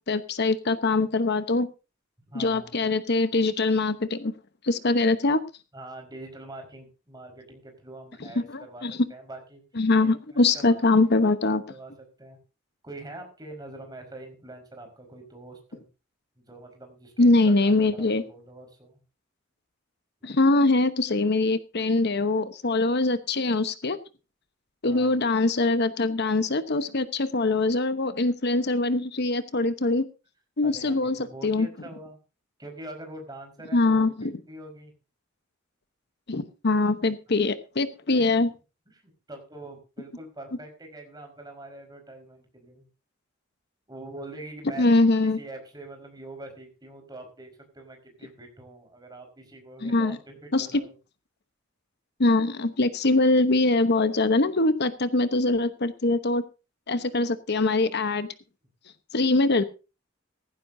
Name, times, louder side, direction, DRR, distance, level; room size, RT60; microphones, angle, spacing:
voice 1, 0.1-1.7 2.3-4.3 4.6-5.4 8.5-9.0 9.8-11.6 17.2-18.2 20.2-24.0 24.8-30.0 30.6-31.2 31.4-31.7 33.7-34.3 36.3-38.5 44.8-45.4 49.8-50.2 50.5-50.7 52.2-56.4 56.9-58.3 59.1-59.6, left 2 dB, 55° left, 11 dB, 1.0 m, -23 dB
voice 2, 2.3-2.9 5.7-9.6 10.0-10.8 11.4-11.9 12.2-12.4 12.8-15.8 16.5-19.0 20.2-20.3 24.9-25.2 30.6-32.2 32.6-34.9 37.4-37.5 38.1-38.4 39.0-42.9 43.9-45.0 45.3-50.9, right 2 dB, 20° right, 4 dB, 4.9 m, -44 dB
16.5 x 15.0 x 2.7 m, 0.31 s
head